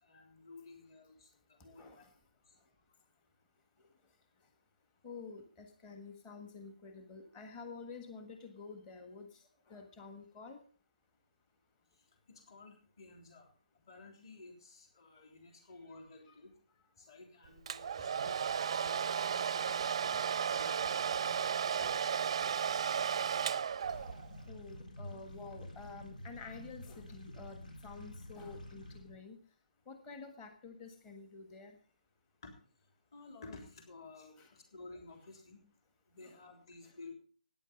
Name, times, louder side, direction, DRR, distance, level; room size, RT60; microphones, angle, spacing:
voice 1, 0.0-2.1 2.5-2.6 12.3-13.5 13.9-16.5 17.0-19.8 20.5-21.9 32.4-32.5 33.1-35.6 36.1-37.1, left 3 dB, 35° left, 4 dB, 3.5 m, -54 dB
voice 2, 1.8-2.1 5.0-10.6 16.3-16.4 20.1-20.3 23.8-24.2 24.5-29.4 29.9-31.8 34.4-34.5 36.2-36.4 36.8-36.9, left 4 dB, 15° left, 7 dB, 1.5 m, -50 dB
Domestic sounds home sounds, 17.7-24.3, right 7 dB, 40° right, 0.5 m, -34 dB
sound 1, 23.8-29.2, left 1 dB, 85° left, 3.8 m, -49 dB
14.0 x 9.8 x 5.3 m, 0.42 s
hypercardioid pair, 165°, 4 cm